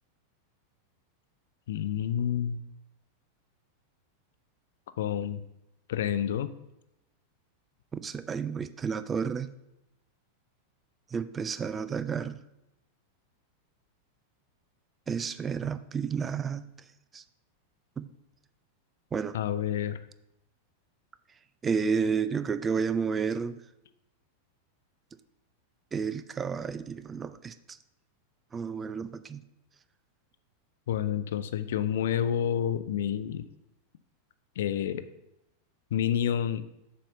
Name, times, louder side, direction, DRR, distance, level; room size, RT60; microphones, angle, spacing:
voice 1, 1.7-2.6 5.0-5.4 5.9-6.5 19.3-20.0 30.9-33.4 34.6-35.0 35.9-36.6, left 9 dB, 60° left, 12 dB, 0.5 m, -29 dB
voice 2, 7.9-9.5 11.1-12.4 15.1-16.7 17.1-17.2 18.0-18.1 19.1-19.4 21.6-23.6 25.9-27.5 28.5-29.4, right 6 dB, 20° right, 14 dB, 0.4 m, -31 dB
7.3 x 4.3 x 6.4 m, 0.88 s
figure-of-eight pair, 90°, 0 cm